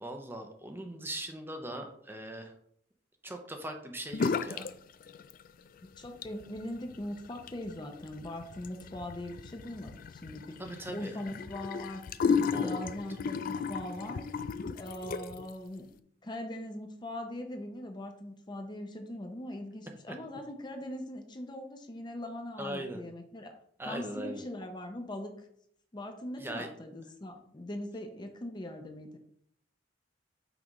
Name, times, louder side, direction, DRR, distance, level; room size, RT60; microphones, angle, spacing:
voice 1, 0.0-2.5 3.2-4.7 10.6-11.1 12.5-12.9 20.1-20.2 22.6-23.0 23.8-24.4 26.4-26.7, right 1 dB, 10° right, 4 dB, 0.7 m, -40 dB
sound 1, 4.1-4.7 5.0-5.7 6.0-15.5, left 5 dB, 50° left, 0.3 m, -34 dB
voice 2, 5.8-12.1 12.5-14.3 14.8-15.9 16.2-23.5 23.9-25.5 25.9-29.2, left 1 dB, 25° left, 5 dB, 0.7 m, -41 dB
6.0 x 3.4 x 5.1 m, 0.65 s
head